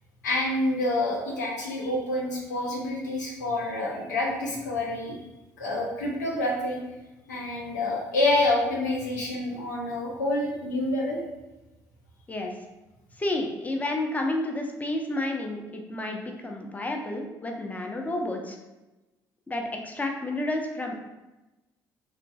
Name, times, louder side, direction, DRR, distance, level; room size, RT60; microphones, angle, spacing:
voice 1, 0.2-5.2 5.6-6.8 7.3-11.2, left 2 dB, 90° left, -2 dB, 0.6 m, -27 dB
voice 2, 13.2-18.6 19.5-21.0, left 1 dB, 15° left, 2 dB, 0.5 m, -30 dB
2.9 x 2.5 x 2.2 m, 1.0 s
hypercardioid pair, 55°, 9 cm